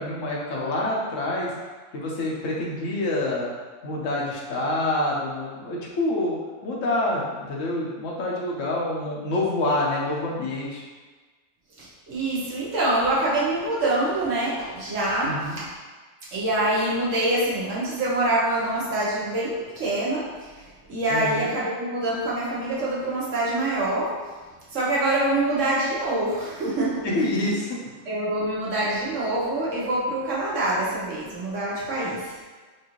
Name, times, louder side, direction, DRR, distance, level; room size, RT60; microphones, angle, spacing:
voice 1, 0.0-1.5 1.9-3.5 3.8-6.4 6.6-10.8 15.2-15.6 21.1-21.5 27.0-27.8, left 1 dB, 90° left, -4 dB, 1.2 m, -27 dB
voice 2, 11.8-15.7 16.3-20.3 20.9-24.1 24.7-27.0 28.1-32.4, right 1 dB, 80° right, -7 dB, 1.5 m, -25 dB
4.6 x 2.6 x 3.0 m, 1.4 s
omnidirectional pair, 1.3 m